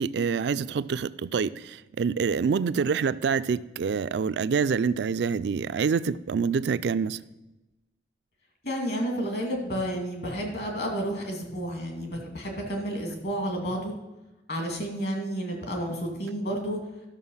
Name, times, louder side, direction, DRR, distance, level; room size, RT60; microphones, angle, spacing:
voice 1, 0.0-7.2, right 5 dB, 65° right, 0.3 m, -26 dB
voice 2, 8.6-13.9 14.5-16.8, equal, 60° left, 2.3 m, -31 dB
11.5 x 6.5 x 5.5 m
head